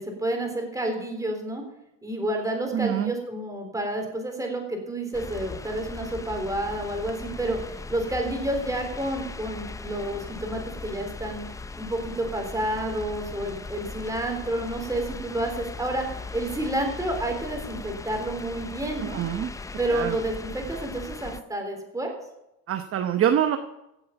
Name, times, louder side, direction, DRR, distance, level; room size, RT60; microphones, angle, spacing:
voice 1, 0.0-1.6 2.0-11.4 11.8-16.0 16.3-19.2 19.8-22.1, right 1 dB, 10° right, 3 dB, 3.8 m, -30 dB
voice 2, 2.7-3.1 19.0-19.5 19.9-20.2 22.7-23.6, right 10 dB, 35° right, 8 dB, 0.9 m, -25 dB
sound 1, 5.1-21.4, left 3 dB, 10° left, 0.4 m, -39 dB
16.0 x 7.9 x 5.9 m, 0.88 s
supercardioid pair, 110°, 39 cm